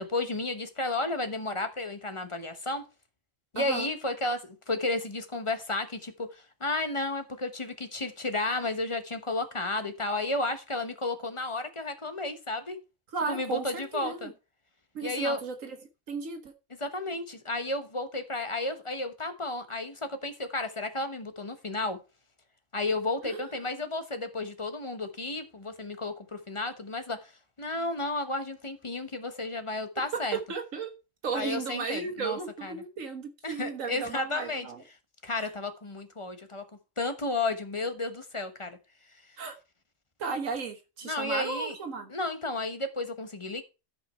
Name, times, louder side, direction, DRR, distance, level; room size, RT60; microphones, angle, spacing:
voice 1, 0.0-2.8 3.5-12.8 13.3-14.3 15.0-15.4 16.8-22.0 22.7-27.3 27.6-30.4 31.3-32.8 33.4-34.7 35.2-36.7 37.0-38.8 41.0-41.8 42.1-43.6, left 2 dB, 25° left, 1.2 m, -32 dB
voice 2, 3.6-3.9 13.1-14.3 15.0-15.8 16.1-16.5 23.2-23.5 30.1-30.2 30.5-30.9 31.2-34.8 35.4-35.5 39.4-39.6 40.2-42.1, right 5 dB, 85° right, 1.7 m, -35 dB
13.5 x 5.5 x 4.5 m
omnidirectional pair, 1.3 m